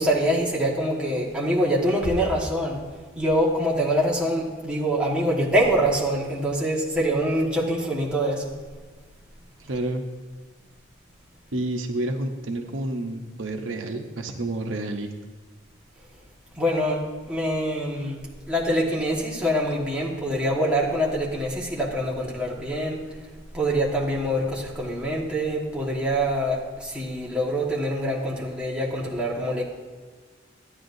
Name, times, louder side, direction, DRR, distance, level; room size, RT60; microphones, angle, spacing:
voice 1, 0.0-2.8 3.1-8.5 16.5-18.2 18.5-23.0 23.5-29.6, equal, 5° right, -5 dB, 1.5 m, -25 dB
voice 2, 9.6-10.1 11.5-15.1, right 1 dB, 90° right, 4 dB, 0.9 m, -29 dB
13.0 x 9.8 x 2.7 m, 1.4 s
head